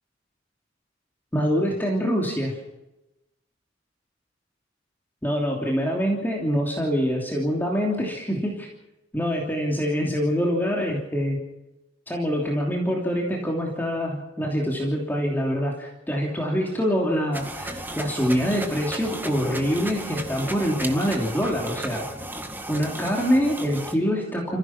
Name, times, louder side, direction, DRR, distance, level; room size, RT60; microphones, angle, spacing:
voice 1, 1.3-2.6 5.2-8.7 9.1-11.4 12.1-22.1 22.7-24.6, equal, 10° left, -1 dB, 3.1 m, -25 dB
sound 1, 17.3-23.9, right 1 dB, 10° right, 2.0 m, -35 dB
29.5 x 15.5 x 6.0 m, 0.96 s
head